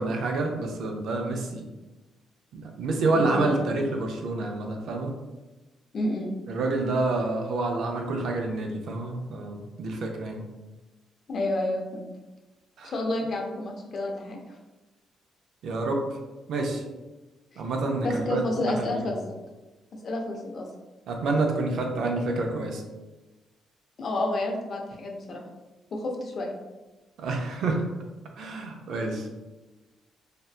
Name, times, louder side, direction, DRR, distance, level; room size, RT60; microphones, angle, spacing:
voice 1, 0.0-1.6 2.5-5.1 6.5-10.4 12.8-12.9 15.6-16.1 16.5-16.8 17.6-19.0 21.1-22.8 27.2-27.8 28.4-29.3, right 2 dB, 70° right, 2 dB, 0.4 m, -28 dB
voice 2, 3.1-3.5 5.9-6.3 11.3-12.1 12.8-14.6 17.5-17.6 18.0-19.4 20.0-20.7 24.0-25.4 25.9-26.6, left 1 dB, 50° left, 1 dB, 0.5 m, -30 dB
2.6 x 2.1 x 2.3 m, 1.1 s
cardioid pair, 90°, 0 cm